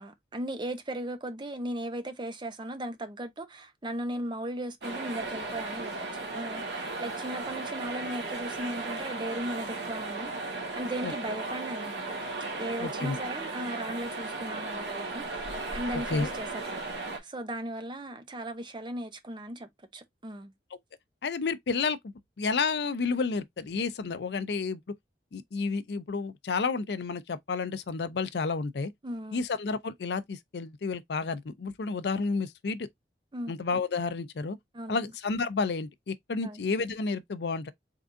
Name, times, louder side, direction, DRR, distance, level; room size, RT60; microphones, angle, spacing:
voice 1, 0.0-12.0 12.4-20.5 29.0-29.4 33.3-33.5 34.7-35.0 36.4-36.6, right 1 dB, 25° right, 0.7 m, -37 dB
sound 1, 4.8-17.2, right 3 dB, 80° right, 1.4 m, -36 dB
voice 2, 12.8-13.2 16.1-16.3 21.2-22.0 22.4-24.8 25.3-28.9 29.3-32.9 33.5-34.6 34.9-37.7, left 4 dB, 70° left, 0.5 m, -31 dB
3.8 x 3.5 x 2.5 m
head